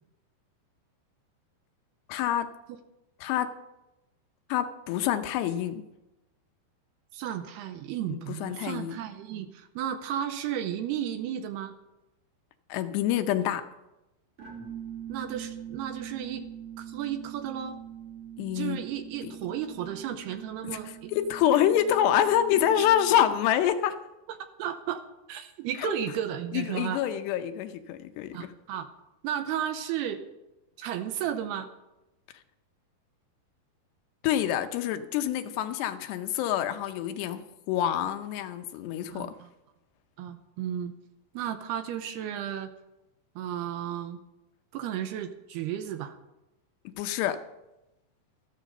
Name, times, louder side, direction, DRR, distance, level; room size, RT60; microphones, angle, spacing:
voice 1, 2.1-2.5 3.2-3.5 4.5-5.8 8.1-9.0 12.7-13.6 18.4-18.8 19.2-19.4 19.8-19.9 20.6-24.0 25.8-25.9 26.5-28.5 34.2-39.3 47.0-47.4, left 10 dB, 80° left, 9 dB, 2.8 m, -27 dB
voice 2, 7.1-11.7 15.1-16.5 16.8-17.8 18.5-21.1 22.8-22.9 24.6-25.0 25.3-27.0 28.3-28.9 29.2-30.2 30.8-31.7 39.1-39.5 40.2-40.9 41.3-42.7 43.4-44.2 44.7-46.2, right 10 dB, 80° right, 8 dB, 2.6 m, -33 dB
sound 1, 14.4-23.6, right 9 dB, 40° right, 2.8 m, -43 dB
14.0 x 13.5 x 5.4 m, 0.96 s
omnidirectional pair, 5.1 m